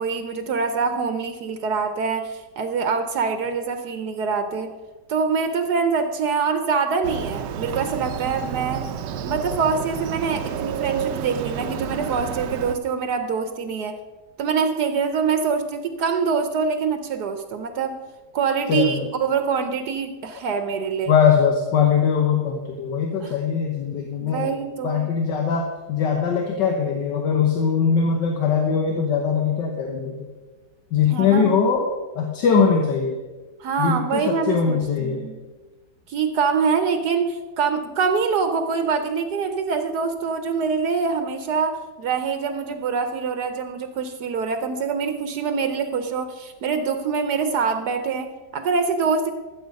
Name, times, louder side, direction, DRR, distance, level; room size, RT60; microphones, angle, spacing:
voice 1, 0.0-4.7 5.1-8.8 9.2-14.0 14.4-17.9 18.3-21.1 23.2-23.3 24.2-25.1 31.1-31.5 33.6-35.3 36.1-49.3, right 5 dB, 70° right, 8 dB, 1.3 m, -24 dB
Motorcycle, 7.0-12.8, right 8 dB, 85° right, 1.3 m, -30 dB
voice 2, 18.7-19.1 21.1-24.5 24.8-30.2 30.9-31.9 32.1-33.2 33.8-35.3, left 6 dB, 80° left, 2 dB, 1.7 m, -21 dB
13.5 x 7.6 x 5.2 m, 1.2 s
omnidirectional pair, 1.9 m